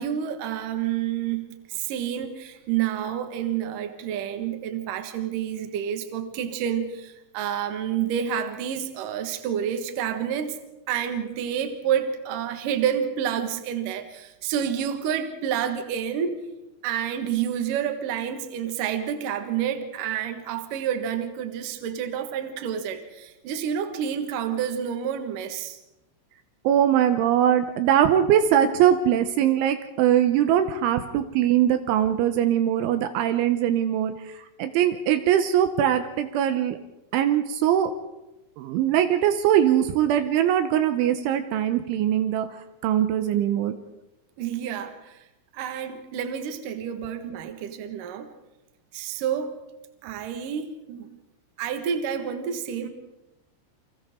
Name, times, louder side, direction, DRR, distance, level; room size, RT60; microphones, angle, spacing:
voice 1, 0.0-10.6 10.9-16.4 16.8-25.8 44.4-45.2 45.5-48.3 48.9-49.6 50.0-51.1 51.6-52.9, right 9 dB, 60° right, 7 dB, 2.5 m, -29 dB
voice 2, 26.6-34.1 34.6-36.8 37.1-37.9 38.6-42.5 42.8-43.7, right 10 dB, 80° right, 9 dB, 3.2 m, -21 dB
29.0 x 25.5 x 3.7 m, 0.95 s
omnidirectional pair, 5.7 m